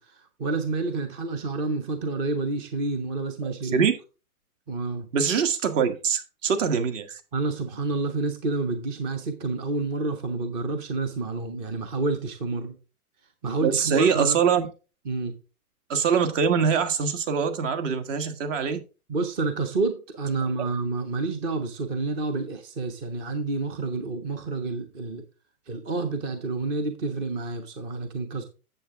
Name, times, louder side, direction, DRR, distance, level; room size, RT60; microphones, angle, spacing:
voice 1, 0.0-3.9 4.7-5.1 7.3-12.7 13.4-14.4 15.1-15.4 19.1-25.2 25.7-28.4, right 3 dB, 15° right, 0.4 m, -29 dB
voice 2, 3.4-3.9 5.1-7.2 13.6-14.7 15.9-18.8, right 6 dB, 55° right, 1.6 m, -23 dB
8.6 x 7.3 x 3.6 m
hypercardioid pair, 135°, 44 cm